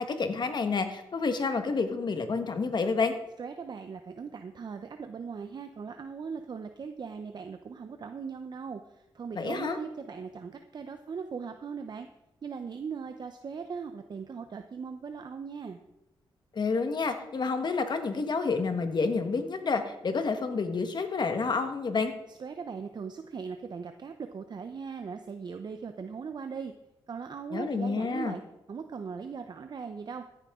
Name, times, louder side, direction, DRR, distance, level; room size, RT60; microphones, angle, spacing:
voice 1, 0.0-3.1 9.3-9.8 16.5-22.1 27.5-28.3, left 4 dB, 50° left, 8 dB, 1.4 m, -29 dB
voice 2, 3.4-8.8 9.1-12.1 12.4-15.8 22.4-26.7 27.1-28.4 28.7-30.3, right 5 dB, 50° right, 7 dB, 0.7 m, -39 dB
15.0 x 10.0 x 3.7 m, 0.94 s
cardioid pair, 95°, 9 cm